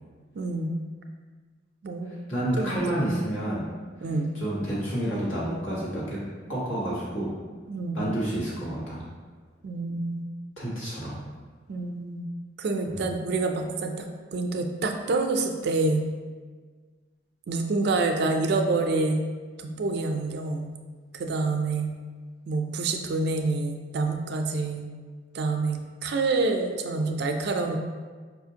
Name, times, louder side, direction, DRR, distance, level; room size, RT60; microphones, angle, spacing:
voice 1, 0.4-0.8 1.8-2.1 2.6-2.8 4.0-4.3 7.7-8.0 9.6-10.3 11.7-12.3 12.6-14.1 14.3-16.1 17.5-19.2 19.6-20.7 21.1-21.9 22.5-24.9 25.3-27.8, right 3 dB, 55° right, 5 dB, 0.3 m, -27 dB
voice 2, 2.3-3.6 4.3-6.2 6.5-7.3 7.9-9.0 10.6-11.2 12.9-13.1, right 1 dB, 90° left, -8 dB, 1.4 m, -29 dB
5.0 x 2.4 x 2.7 m, 1.5 s
head